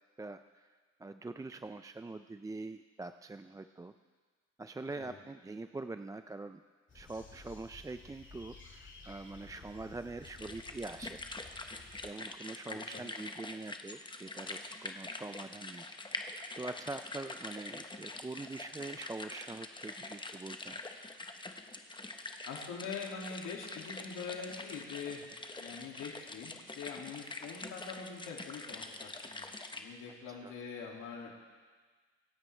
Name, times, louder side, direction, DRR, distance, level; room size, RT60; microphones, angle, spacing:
voice 1, 0.2-0.7 1.0-3.9 4.6-6.6 6.9-11.2 12.0-15.9 16.6-20.8 30.3-30.5, right 3 dB, 10° right, 9 dB, 0.3 m, -44 dB
sound 1, 6.9-12.1, left 4 dB, 40° left, 2.4 m, -54 dB
sound 2, 10.2-29.8, left 2 dB, 15° left, 1.0 m, -45 dB
voice 2, 12.7-13.1 22.4-25.2 25.6-31.3, left 5 dB, 85° left, -1 dB, 2.4 m, -44 dB
25.5 x 9.2 x 3.3 m, 1.5 s
cardioid pair, 90°, 30 cm